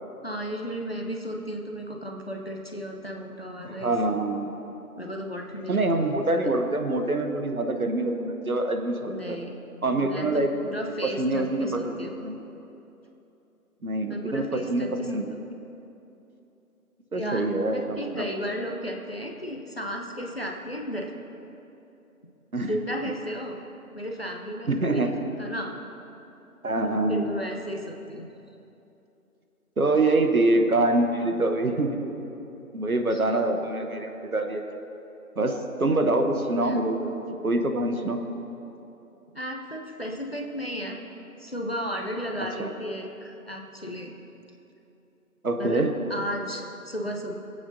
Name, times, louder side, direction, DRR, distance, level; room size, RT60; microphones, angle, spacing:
voice 1, 0.2-4.0 5.0-6.3 9.0-9.6 10.0-12.2 14.1-15.5 17.1-21.1 22.7-23.6 23.9-25.1 25.4-25.7 26.9-28.3 33.1-33.5 36.6-36.8 39.3-41.0 41.4-44.1 45.6-47.3, equal, 40° left, 1 dB, 0.7 m, -34 dB
voice 2, 3.6-4.5 5.7-9.4 9.8-10.5 11.2-12.4 13.8-15.3 17.1-18.3 22.5-22.7 24.7-25.1 26.6-27.3 29.8-32.0 32.7-34.6 35.4-37.1 37.4-38.2 42.6-42.7 45.4-45.9, right 2 dB, 70° right, 5 dB, 1.1 m, -25 dB
20.0 x 8.6 x 2.8 m, 2.9 s
figure-of-eight pair, 175°, 45 cm